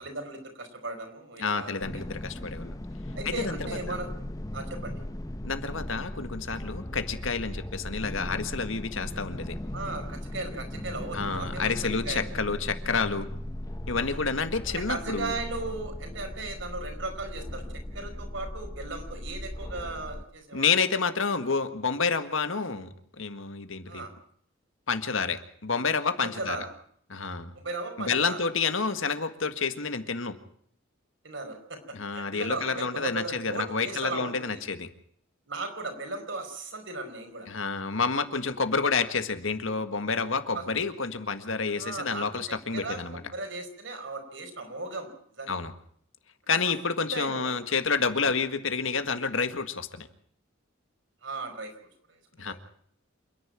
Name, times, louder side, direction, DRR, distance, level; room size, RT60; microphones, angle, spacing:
voice 1, 0.0-1.8 3.1-4.1 4.5-4.9 9.7-12.3 14.0-14.2 14.7-17.6 17.9-20.7 23.9-24.1 26.2-26.7 27.5-28.4 31.2-34.6 35.5-37.5 40.5-40.7 41.7-45.6 46.6-46.7 47.1-47.6 51.2-51.7 52.1-52.2 52.5-52.6, right 3 dB, 65° right, 4 dB, 4.9 m, -37 dB
voice 2, 1.4-2.7 3.2-3.6 3.9-4.0 5.4-9.6 11.1-13.3 13.9-15.4 20.5-24.0 24.9-26.6 27.1-27.5 28.0-30.4 31.9-34.9 37.5-43.2 45.5-45.7 46.5-50.1 52.4-52.5, left 5 dB, 75° left, 9 dB, 1.8 m, -29 dB
sound 1, 1.8-20.3, left 1 dB, 15° left, 0.8 m, -38 dB
28.0 x 10.5 x 8.8 m, 0.64 s
head